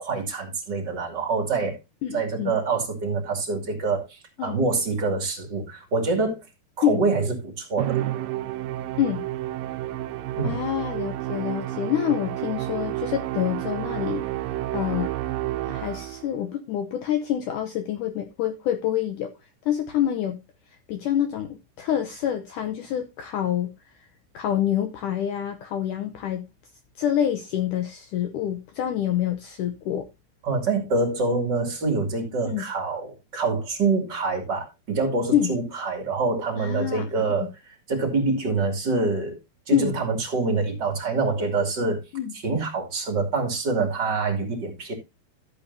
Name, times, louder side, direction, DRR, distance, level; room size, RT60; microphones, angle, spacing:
voice 1, 0.0-1.8 2.1-6.4 6.8-8.0 10.4-10.6 30.4-39.4 39.7-42.0 42.3-44.9, right 3 dB, 30° right, 2.5 m, -26 dB
voice 2, 2.0-2.5 4.4-4.6 6.8-7.0 9.0-9.3 10.4-14.3 14.7-15.1 15.7-19.3 19.7-20.4 20.9-23.7 24.3-26.5 27.0-30.1 32.4-32.6 35.3-35.5 36.6-37.1 37.4-37.5 39.7-39.9 42.1-42.3, left 10 dB, 80° left, 1.8 m, -26 dB
Musical instrument, 7.8-16.3, right 14 dB, 75° right, 2.2 m, -30 dB
13.5 x 8.4 x 2.7 m
omnidirectional pair, 4.7 m